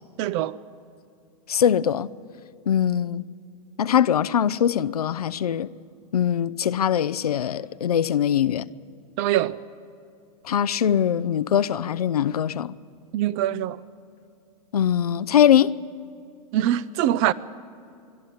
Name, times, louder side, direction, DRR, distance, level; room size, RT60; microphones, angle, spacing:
voice 1, 0.2-0.6 9.2-9.6 13.1-13.8 16.5-17.3, right 12 dB, 50° right, 0.7 m, -23 dB
voice 2, 1.5-2.1 2.7-3.2 3.8-5.7 6.1-8.7 10.4-12.7 14.7-15.7, left 9 dB, 90° left, 0.6 m, -22 dB
23.0 x 12.0 x 9.3 m
hypercardioid pair, 110°, 19 cm